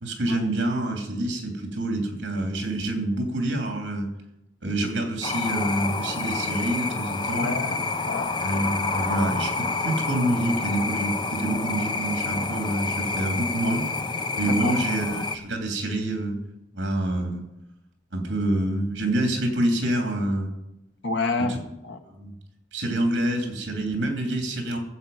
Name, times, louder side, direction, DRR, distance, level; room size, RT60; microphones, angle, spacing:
voice 1, 0.0-4.1 4.6-7.5 8.4-13.9 14.4-16.4 16.7-17.4 18.1-20.5 21.5-21.6 22.1-22.3 22.7-24.8, right 1 dB, 70° right, 3 dB, 3.1 m, -27 dB
sound 1, 5.2-15.4, left 3 dB, 25° left, 0.6 m, -28 dB
voice 2, 7.3-8.3 14.4-14.8 21.0-21.6 21.8-22.0, left 3 dB, 75° left, 6 dB, 1.3 m, -28 dB
16.0 x 7.7 x 5.6 m, 0.90 s
head